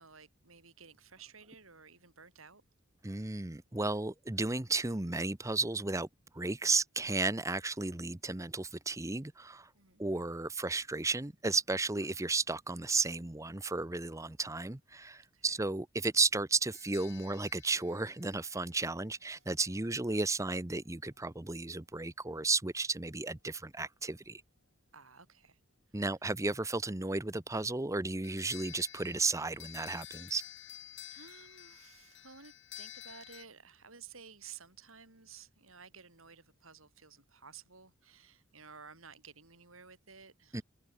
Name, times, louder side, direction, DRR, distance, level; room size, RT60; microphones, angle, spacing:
voice 1, 0.0-2.6 9.7-10.0 15.3-15.6 19.7-19.9 20.1-20.2 24.9-25.6 25.9-26.0 29.9-30.1 31.1-40.6, right 6 dB, 80° right, 7.3 m, -54 dB
voice 2, 3.0-6.1 6.3-9.7 10.0-24.4 25.9-30.4 40.5-40.6, right 3 dB, 15° right, 0.8 m, -33 dB
sound 1, 16.7-19.0 28.2-33.4, left 11 dB, 60° left, 3.4 m, -51 dB
head